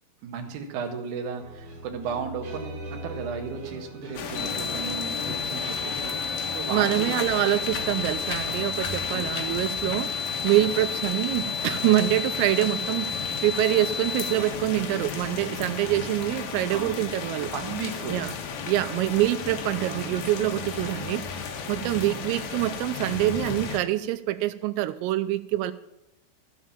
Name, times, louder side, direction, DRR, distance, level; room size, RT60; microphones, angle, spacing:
voice 1, 0.2-7.1 9.1-9.6 16.7-17.0 17.5-18.2 19.8-20.2 21.7-22.2, right 6 dB, 65° right, 2 dB, 2.0 m, -35 dB
sound 1, 1.4-8.1, right 1 dB, 45° right, 3.8 m, -40 dB
sound 2, 4.1-23.8, left 6 dB, 75° left, 2.0 m, -34 dB
sound 3, 4.3-14.3, left 5 dB, 50° left, 5.7 m, -32 dB
voice 2, 6.7-17.5 18.1-18.3 18.7-21.4 21.7-25.7, right 15 dB, 90° right, 11 dB, 3.3 m, -25 dB
13.0 x 7.6 x 7.3 m, 0.91 s
omnidirectional pair, 5.9 m